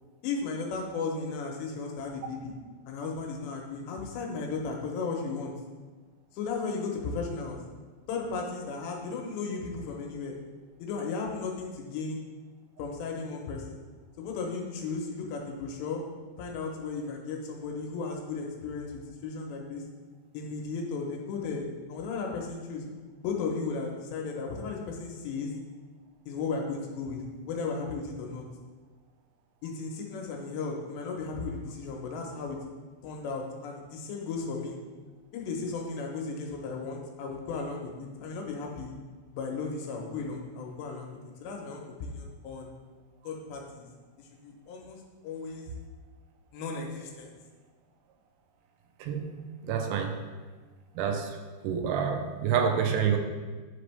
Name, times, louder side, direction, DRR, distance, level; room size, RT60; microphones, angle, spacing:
voice 1, 0.2-2.5 2.9-5.5 6.3-7.6 8.1-10.4 10.8-12.2 12.8-13.8 14.2-16.0 16.4-19.8 20.3-22.9 23.2-25.5 26.3-28.4 29.6-32.6 33.0-34.8 35.3-38.9 39.3-41.1 41.4-42.7 43.2-43.9 44.2-45.7 46.5-47.3, left 4 dB, 80° left, 1 dB, 2.8 m, -35 dB
voice 2, 49.0-50.1 51.0-51.3 51.6-53.2, right 7 dB, 90° right, 4 dB, 3.1 m, -28 dB
9.8 x 5.1 x 3.3 m, 1.4 s
omnidirectional pair, 5.4 m